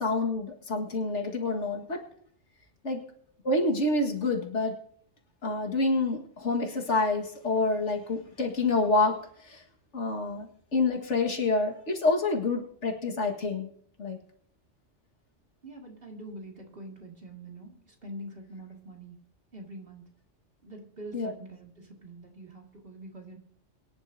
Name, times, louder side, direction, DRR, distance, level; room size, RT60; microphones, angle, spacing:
voice 1, 0.0-2.0 2.8-3.0 3.4-4.7 5.4-9.1 9.4-9.6 9.9-13.7 14.0-14.2 21.1-21.3, left 3 dB, 75° left, 2 dB, 2.1 m, -27 dB
voice 2, 15.6-19.2 19.5-20.0 20.6-23.4, right 1 dB, 50° right, 0 dB, 2.5 m, -44 dB
23.0 x 11.0 x 2.7 m, 0.64 s
omnidirectional pair, 1.2 m